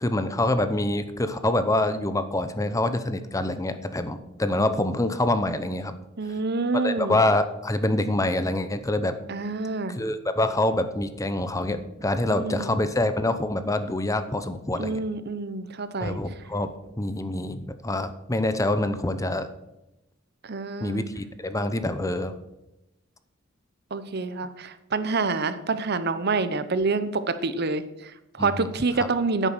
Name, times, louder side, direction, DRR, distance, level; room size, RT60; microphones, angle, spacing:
voice 1, 0.0-6.0 6.8-9.1 9.9-15.0 16.0-16.7 17.0-19.5 20.8-22.3 28.4-28.7 29.0-29.1, left 1 dB, 15° left, 10 dB, 0.8 m, -26 dB
voice 2, 6.2-7.2 9.3-10.0 12.3-12.7 14.8-16.2 20.4-21.0 23.9-29.5, right 3 dB, 55° right, 12 dB, 0.9 m, -27 dB
10.5 x 9.1 x 6.6 m, 0.92 s
head